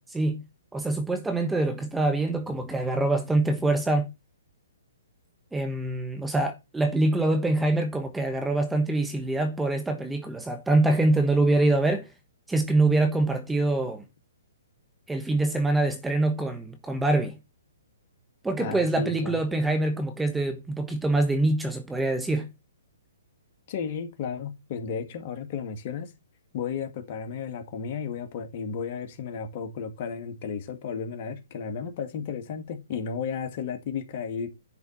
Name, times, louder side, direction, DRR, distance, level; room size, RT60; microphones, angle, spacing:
voice 1, 0.1-0.4 0.7-4.1 5.5-12.1 12.5-14.0 15.1-17.3 18.4-22.5, right 2 dB, 5° right, 1.3 m, -25 dB
voice 2, 18.6-19.4 23.7-26.1 26.5-34.5, left 6 dB, 45° left, 2.2 m, -33 dB
10.5 x 4.4 x 5.8 m
hypercardioid pair, 135°, 0 cm